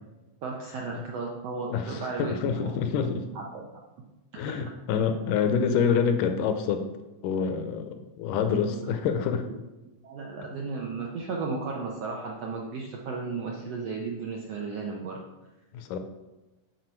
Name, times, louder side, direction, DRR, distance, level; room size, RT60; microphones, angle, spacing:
voice 1, 0.4-2.7 3.0-3.7 5.5-5.6 8.6-9.5 10.0-15.2, right 4 dB, 75° right, -1 dB, 1.5 m, -35 dB
voice 2, 1.7-3.3 4.4-6.9 7.2-9.5 15.7-16.0, left 6 dB, 80° left, 7 dB, 2.1 m, -27 dB
7.8 x 5.6 x 4.4 m, 1.1 s
omnidirectional pair, 3.8 m